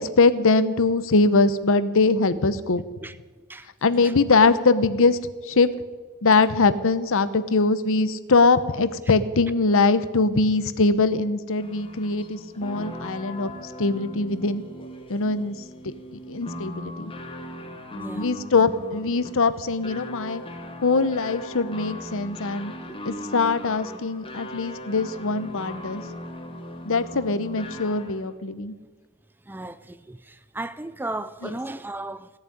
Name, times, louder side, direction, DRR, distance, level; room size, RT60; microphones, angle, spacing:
voice 1, 0.0-2.8 3.8-5.7 6.2-14.6 15.1-15.6 15.8-17.1 18.1-20.4 20.8-22.7 23.0-26.0 26.8-28.7 31.4-31.5, left 3 dB, 60° left, 0.8 m, -22 dB
sound 1, 11.6-28.3, left 1 dB, 25° left, 1.4 m, -39 dB
voice 2, 17.9-18.3 22.9-23.0 29.5-32.3, right 2 dB, 10° right, 0.4 m, -35 dB
16.5 x 7.3 x 10.0 m
head